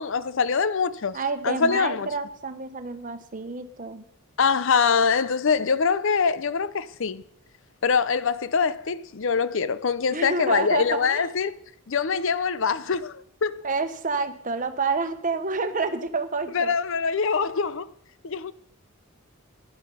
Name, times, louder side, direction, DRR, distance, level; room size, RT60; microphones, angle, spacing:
voice 1, 0.0-1.2 1.4-2.1 4.4-7.2 7.8-11.5 11.9-13.6 16.5-17.9 18.2-18.5, left 5 dB, 60° left, 0.6 m, -24 dB
voice 2, 1.1-4.1 10.1-11.3 13.6-16.7, right 4 dB, 40° right, 1.1 m, -29 dB
11.0 x 10.5 x 5.5 m
head